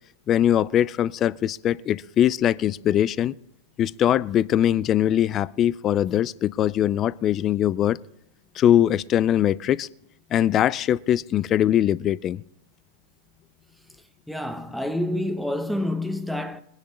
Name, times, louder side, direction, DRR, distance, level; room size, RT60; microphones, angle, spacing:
voice 1, 0.3-3.3 3.8-8.0 8.6-9.9 10.3-12.4, left 11 dB, 35° left, 0.4 m, -21 dB
voice 2, 14.3-16.6, left 1 dB, ahead, 0.9 m, -28 dB
21.0 x 10.5 x 3.2 m
hypercardioid pair, 100°, 0 cm